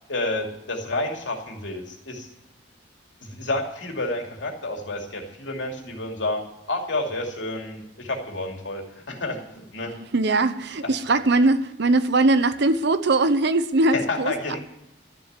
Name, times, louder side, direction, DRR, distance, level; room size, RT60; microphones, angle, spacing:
voice 1, 0.1-2.3 3.2-6.4 6.7-9.9 13.9-14.6, left 2 dB, 75° left, 2.7 m, -30 dB
voice 2, 10.1-14.6, right 2 dB, 65° right, 0.8 m, -21 dB
13.0 x 7.1 x 9.6 m
head